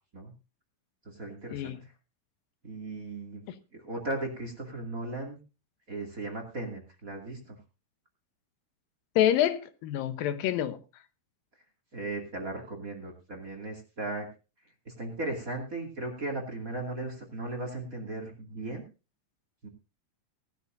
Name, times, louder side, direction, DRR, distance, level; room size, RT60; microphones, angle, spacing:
voice 1, 1.0-1.9 2.6-3.4 3.7-5.4 5.9-7.6 11.9-14.3 14.9-18.8 19.6-19.7, right 2 dB, 25° right, 2.4 m, -37 dB
voice 2, 9.2-10.8, left 11 dB, 90° left, 2.7 m, -27 dB
18.5 x 12.5 x 2.6 m
omnidirectional pair, 3.9 m